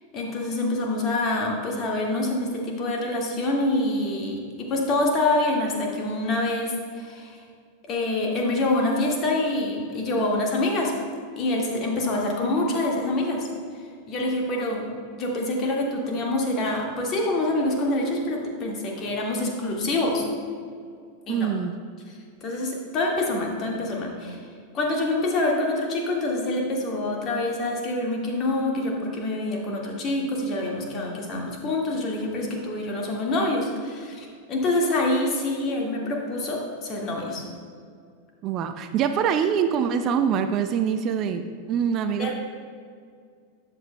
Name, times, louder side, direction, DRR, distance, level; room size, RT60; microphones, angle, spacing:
voice 1, 0.1-7.4 7.9-10.9 11.4-13.5 14.1-20.2 21.3-21.5 22.1-24.4 24.7-37.4 42.2-42.3, left 2 dB, 35° left, -1 dB, 1.8 m, -26 dB
voice 2, 21.3-21.7 38.4-42.3, right 7 dB, 35° right, 9 dB, 0.4 m, -24 dB
13.0 x 9.0 x 2.2 m, 2.2 s
figure-of-eight pair, 90°, 0 cm